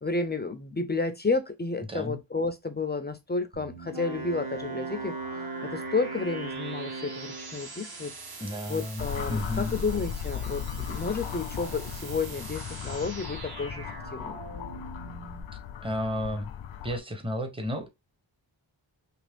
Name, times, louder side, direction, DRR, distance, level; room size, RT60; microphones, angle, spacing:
voice 1, 0.0-5.2 5.6-8.1 8.7-13.9 14.1-14.4, left 3 dB, 25° left, 0.3 m, -31 dB
voice 2, 1.9-2.2 8.4-9.8 15.8-16.5 16.8-17.9, left 1 dB, 10° right, 0.6 m, -32 dB
sound 1, 3.5-15.4, right 3 dB, 50° right, 0.8 m, -44 dB
Wind instrument woodwind instrument, 3.9-7.6, right 4 dB, 85° right, 1.3 m, -37 dB
sound 2, 9.0-17.0, left 8 dB, 80° left, 0.5 m, -37 dB
2.9 x 2.6 x 3.3 m
wide cardioid pair, 90°, 46 cm